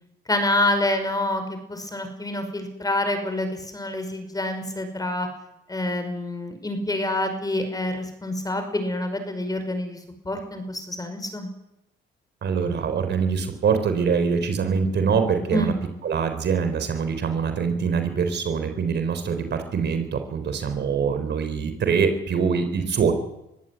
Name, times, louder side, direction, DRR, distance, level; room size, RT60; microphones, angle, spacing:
voice 1, 0.3-5.3 5.7-10.0 10.3-11.5 15.5-15.8, left 1 dB, 20° left, 7 dB, 5.5 m, -27 dB
voice 2, 12.4-15.7 16.0-23.2, right 6 dB, 60° right, 8 dB, 4.0 m, -24 dB
22.0 x 15.5 x 9.5 m, 0.86 s
cardioid pair, 90°, 20 cm